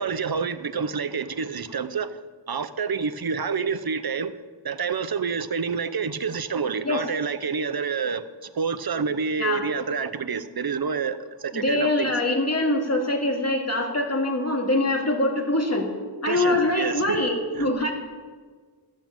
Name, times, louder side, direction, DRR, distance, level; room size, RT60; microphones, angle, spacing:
voice 1, 0.0-2.2 2.5-4.3 4.6-8.2 8.5-12.1 16.3-17.2 17.5-17.7, right 5 dB, 50° right, 12 dB, 0.8 m, -28 dB
voice 2, 11.5-15.9 16.2-17.9, left 2 dB, 30° left, 2 dB, 2.2 m, -24 dB
13.0 x 7.5 x 8.8 m, 1.5 s
wide cardioid pair, 65°, 47 cm